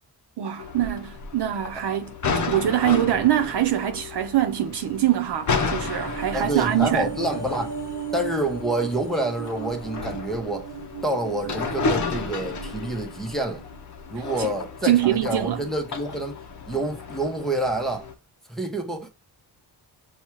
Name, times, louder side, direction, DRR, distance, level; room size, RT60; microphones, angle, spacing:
voice 1, 0.4-7.1 14.4-14.5 14.8-15.6, right 12 dB, 75° right, 0.7 m, -24 dB
sound 1, 0.6-18.1, left 4 dB, 45° left, 0.7 m, -33 dB
sound 2, 5.3-13.8 14.1-14.2, right 6 dB, 25° right, 1.2 m, -37 dB
voice 2, 6.3-7.8 8.1-10.7 11.0-13.6 14.1-16.4 16.7-18.1 18.5-19.1, right 1 dB, ahead, 0.8 m, -27 dB
7.0 x 2.3 x 3.0 m
wide cardioid pair, 170°, 41 cm